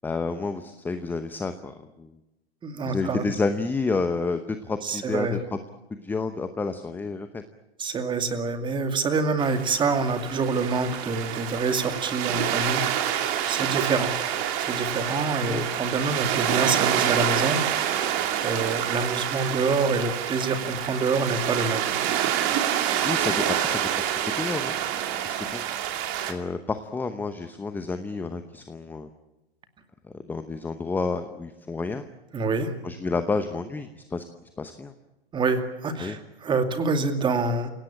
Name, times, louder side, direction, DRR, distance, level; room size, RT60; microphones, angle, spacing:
voice 1, 0.0-2.2 2.8-5.6 5.9-7.4 13.6-13.7 15.4-15.6 18.3-18.4 23.0-24.1 24.4-24.8 25.2-25.7 26.3-29.1 30.0-32.1 32.8-34.2 34.6-34.9 36.0-36.2, left 3 dB, 5° left, 9 dB, 0.9 m, -30 dB
voice 2, 2.6-3.2 4.8-5.4 7.8-14.1 14.6-17.8 18.4-21.8 32.3-32.7 35.3-37.7, right 4 dB, 15° right, 7 dB, 2.4 m, -26 dB
sound 1, 9.4-26.3, right 10 dB, 35° right, 2.6 m, -27 dB
28.5 x 17.5 x 8.8 m, 0.98 s
figure-of-eight pair, 115°, 31 cm